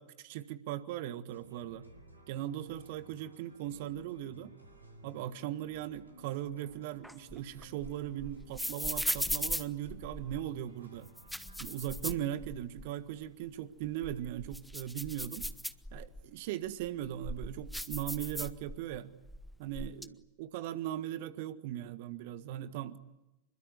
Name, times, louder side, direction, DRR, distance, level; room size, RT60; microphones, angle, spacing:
voice 1, 0.0-1.9 2.3-4.5 5.0-11.1 11.6-15.5 15.9-19.1 19.6-23.0, right 12 dB, 50° right, 13 dB, 1.6 m, -39 dB
sound 1, 1.3-12.2, right 1 dB, 80° right, 4.8 m, -57 dB
sound 2, 7.0-10.5 11.1-12.9 13.2-13.3 13.8-16.2 16.8-19.0 19.2-20.0, equal, ahead, 1.0 m, -38 dB
26.0 x 22.5 x 9.7 m, 0.98 s
figure-of-eight pair, 90°, 0 cm